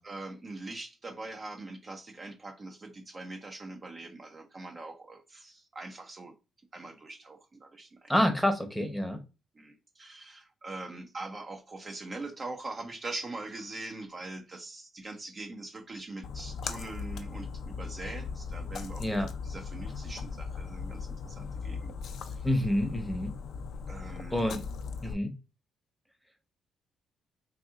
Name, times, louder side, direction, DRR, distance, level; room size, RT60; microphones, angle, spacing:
voice 1, 0.0-6.3 6.7-8.1 9.5-21.9 22.2-22.5 23.9-24.5 25.0-25.2, right 2 dB, 35° right, 4 dB, 0.6 m, -42 dB
voice 2, 8.1-9.2 19.0-19.3 22.4-23.3 24.3-24.6 25.0-25.3, left 1 dB, 5° left, 6 dB, 0.8 m, -27 dB
Splash splatter, 16.2-25.1, left 5 dB, 70° left, 0.4 m, -38 dB
4.1 x 2.6 x 2.4 m, 0.29 s
cardioid pair, 90°, 0 cm